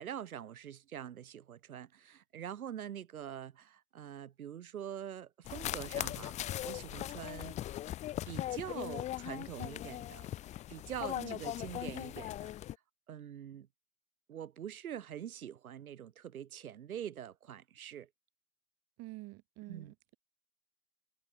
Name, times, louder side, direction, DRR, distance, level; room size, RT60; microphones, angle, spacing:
voice 1, 0.0-7.6 8.3-10.2 10.7-12.5 13.1-13.7 14.3-18.1 19.7-19.9, right 9 dB, 75° right, 3.8 m, -44 dB
sound 1, 5.5-12.8, left 13 dB, 15° left, 0.6 m, -39 dB
voice 2, 19.0-20.1, right 21 dB, 35° right, 2.1 m, -48 dB
hypercardioid pair, 120°, 43 cm